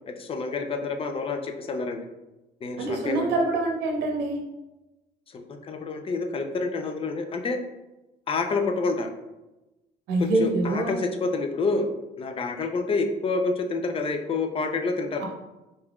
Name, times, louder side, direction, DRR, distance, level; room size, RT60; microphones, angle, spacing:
voice 1, 0.1-2.0 2.6-3.3 5.3-7.6 8.3-9.1 10.2-11.9 12.2-15.2, left 3 dB, 35° left, 5 dB, 0.5 m, -28 dB
voice 2, 2.8-4.4 10.1-10.9 15.2-15.3, right 2 dB, 85° right, 0 dB, 0.8 m, -25 dB
4.1 x 3.4 x 2.4 m, 1.0 s
cardioid pair, 110°, 17 cm